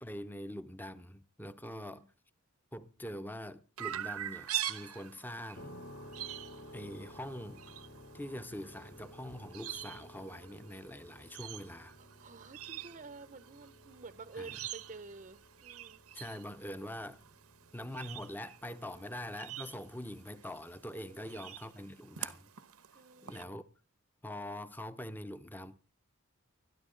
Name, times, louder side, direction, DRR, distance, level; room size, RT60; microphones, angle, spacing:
voice 1, 0.0-2.1 2.7-5.7 6.7-7.6 8.1-12.0 14.4-14.6 16.1-17.2 17.7-22.5 23.2-23.6 24.2-25.8, left 1 dB, 10° left, 0.7 m, -44 dB
voice 2, 1.6-2.0 11.2-11.5 12.0-16.0 18.9-19.2 21.0-21.4 22.9-23.6, right 3 dB, 35° right, 0.7 m, -51 dB
Chirp tweet, 3.8-23.4, right 12 dB, 90° right, 1.0 m, -45 dB
sound 1, 5.6-20.2, equal, 45° left, 1.2 m, -55 dB
21.0 x 13.0 x 3.8 m
head